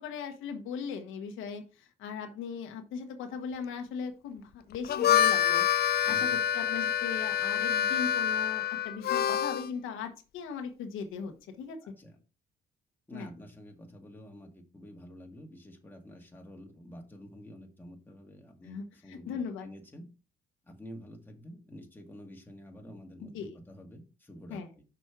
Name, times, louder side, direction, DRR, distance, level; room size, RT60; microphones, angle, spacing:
voice 1, 0.0-5.6 6.1-11.8 13.1-13.3 18.6-19.7 23.3-23.6 24.5-24.7, left 6 dB, 90° left, 5 dB, 1.2 m, -39 dB
Harmonica, 4.7-9.7, left 10 dB, 50° left, 0.5 m, -27 dB
voice 2, 6.1-6.4 11.8-12.2 13.1-20.1 20.6-24.8, equal, 10° left, 1 dB, 1.9 m, -49 dB
6.1 x 5.2 x 4.6 m, 0.33 s
cardioid pair, 90°, 20 cm